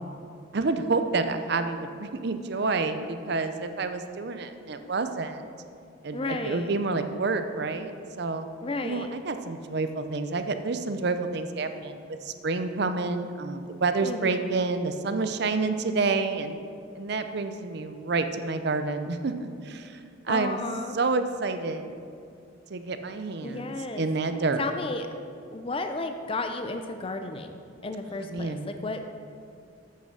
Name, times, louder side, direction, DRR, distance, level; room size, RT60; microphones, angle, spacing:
voice 1, 0.5-5.4 6.0-7.9 8.2-8.5 8.8-16.6 16.9-20.6 20.9-21.9 22.7-24.6 28.3-28.6, right 3 dB, 55° right, 8 dB, 0.6 m, -29 dB
voice 2, 6.1-6.7 8.6-9.1 14.0-14.5 20.3-21.0 23.4-24.0 24.6-25.1 25.5-29.0, left 2 dB, 25° left, 6 dB, 0.5 m, -33 dB
7.7 x 6.7 x 6.4 m, 2.4 s
head